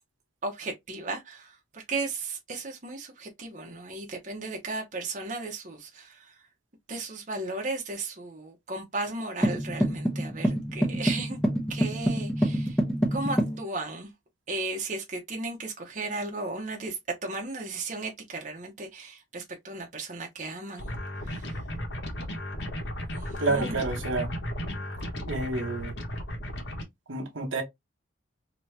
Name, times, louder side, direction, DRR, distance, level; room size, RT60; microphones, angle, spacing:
voice 1, 0.4-6.5 6.9-11.4 11.7-12.8 13.1-14.1 14.5-20.9 21.2-21.6 23.1-23.8, right 3 dB, 40° right, 0.9 m, -35 dB
sound 1, 9.4-13.6, right 1 dB, 5° left, 0.7 m, -27 dB
sound 2, 20.8-26.8, equal, 65° left, 1.1 m, -35 dB
voice 2, 23.4-24.3 25.3-25.9 27.1-27.6, right 3 dB, 85° right, 1.1 m, -29 dB
3.0 x 2.7 x 3.3 m
head